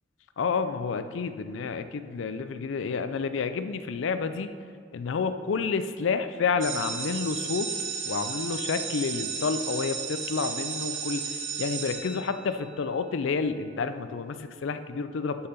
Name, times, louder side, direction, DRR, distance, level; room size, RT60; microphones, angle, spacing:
voice 1, 0.4-4.6 4.9-7.7 8.1-11.2 11.6-15.5, left 5 dB, 90° left, 10 dB, 0.4 m, -29 dB
sound 1, 6.6-12.8, right 6 dB, 80° right, 0.8 m, -34 dB
6.5 x 5.7 x 5.8 m, 2.2 s
head